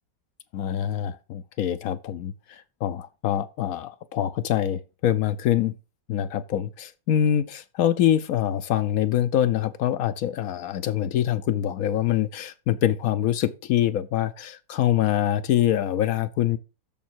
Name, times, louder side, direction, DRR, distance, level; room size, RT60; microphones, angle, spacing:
voice 1, 0.5-5.8 6.1-16.6, left 11 dB, 70° left, 0.8 m, -25 dB
7.1 x 6.5 x 4.5 m
omnidirectional pair, 2.0 m